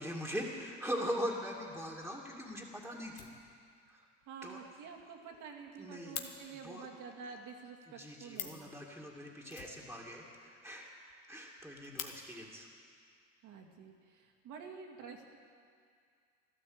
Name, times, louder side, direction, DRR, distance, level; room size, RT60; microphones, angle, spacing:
voice 1, 0.0-3.3 3.9-4.1 4.4-4.6 5.8-6.2 6.5-6.9 7.9-10.9 11.3-12.7, equal, ahead, -3 dB, 2.2 m, -41 dB
Fire, 2.4-2.5 2.7-2.8 3.1-3.9 4.2-4.3 4.6-4.7 5.0-5.1 5.3-6.3 8.0-8.1 8.3-8.7 9.5-10.4 10.7-10.8 11.1-11.2 11.6-12.1 13.1-13.2 13.9-14.5, left 10 dB, 75° left, 1.5 m, -46 dB
voice 2, 4.3-8.7 13.4-15.4, right 5 dB, 65° right, 2 dB, 2.3 m, -49 dB
13.5 x 12.5 x 8.0 m, 2.2 s
hypercardioid pair, 75°, 33 cm